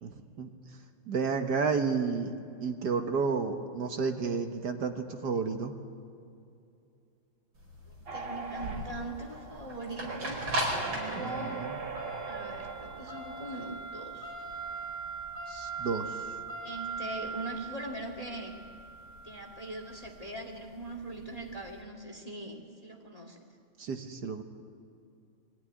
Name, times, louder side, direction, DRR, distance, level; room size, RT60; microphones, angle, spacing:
voice 1, 0.0-0.5 1.1-5.7 11.1-11.7 15.5-16.2 23.8-24.4, right 5 dB, 55° right, 6 dB, 1.7 m, -31 dB
sound 1, 7.6-21.7, right 2 dB, 85° right, 5.9 m, -39 dB
voice 2, 7.9-10.4 10.9-11.6 12.3-14.5 16.6-18.6 19.2-23.4, right 2 dB, 20° left, 2 dB, 2.0 m, -41 dB
sound 2, 8.1-13.6, right 4 dB, 35° right, 1.2 m, -41 dB
23.5 x 15.0 x 9.9 m, 2.5 s
omnidirectional pair, 2.2 m